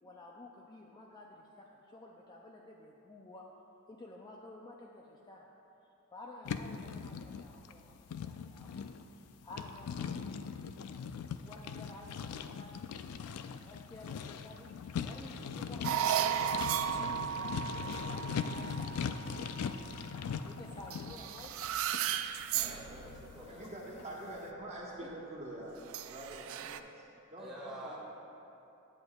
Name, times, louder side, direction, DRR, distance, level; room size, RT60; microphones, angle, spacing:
voice 1, 0.0-3.5 3.9-5.5 6.1-10.2 10.5-11.1 11.5-13.3 13.6-14.7 15.0-16.6 17.0-17.6 18.1-19.4 20.5-21.5 25.0-25.1, left 2 dB, 20° left, -1 dB, 0.4 m, -52 dB
sound 1, 6.5-24.1, left 6 dB, 85° left, 0.3 m, -41 dB
sound 2, 15.8-20.4 20.9-23.8 24.4-24.6 25.9-26.8, right 10 dB, 65° right, 0.3 m, -36 dB
sound 3, 16.4-21.5, left 1 dB, 60° left, 0.9 m, -57 dB
voice 2, 22.5-23.7 26.4-26.6 27.4-28.0, equal, 5° right, -8 dB, 1.4 m, -48 dB
voice 3, 23.5-27.0 27.3-28.0, right 1 dB, 30° right, -4 dB, 1.2 m, -45 dB
10.5 x 7.9 x 2.3 m, 2.9 s
head